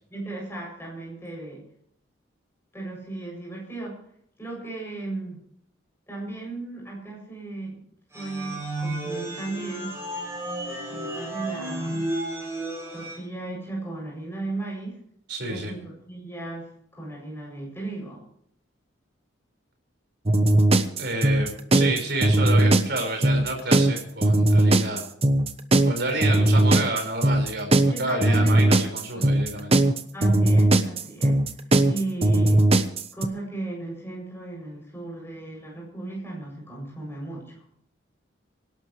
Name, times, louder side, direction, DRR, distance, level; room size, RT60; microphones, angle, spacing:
voice 1, 0.1-1.6 2.7-4.0 4.4-5.4 6.1-7.8 8.1-9.9 10.9-12.1 12.9-15.0 15.5-18.2 27.9-28.8 29.1-29.4 30.1-31.5 31.9-32.7 33.1-37.6, right 2 dB, 10° left, -2 dB, 7.7 m, -35 dB
sound 1, 8.1-13.1, right 1 dB, 15° right, 6.1 m, -32 dB
voice 2, 15.3-15.7 21.0-25.0 25.9-29.8, right 2 dB, 55° right, 2 dB, 5.3 m, -29 dB
sound 2, 20.3-33.3, right 1 dB, 30° right, 1.0 m, -19 dB
26.0 x 12.0 x 3.3 m, 0.68 s
head